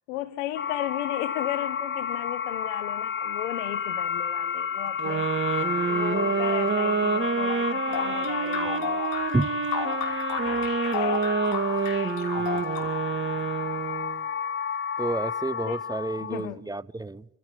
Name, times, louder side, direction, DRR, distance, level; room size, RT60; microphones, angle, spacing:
voice 1, 0.1-5.3 5.9-9.0 10.4-11.3 15.6-15.8 16.2-16.6, left 15 dB, 80° left, 1.5 m, -35 dB
sound 1, 0.6-16.5, left 7 dB, 30° left, 0.8 m, -31 dB
sound 2, 5.0-14.2, right 5 dB, 30° right, 3.0 m, -28 dB
sound 3, 7.9-13.2, left 8 dB, 60° left, 5.8 m, -33 dB
voice 2, 12.4-12.9 15.0-17.3, right 2 dB, 10° right, 0.8 m, -30 dB
28.0 x 16.5 x 8.4 m
hypercardioid pair, 55°, 37 cm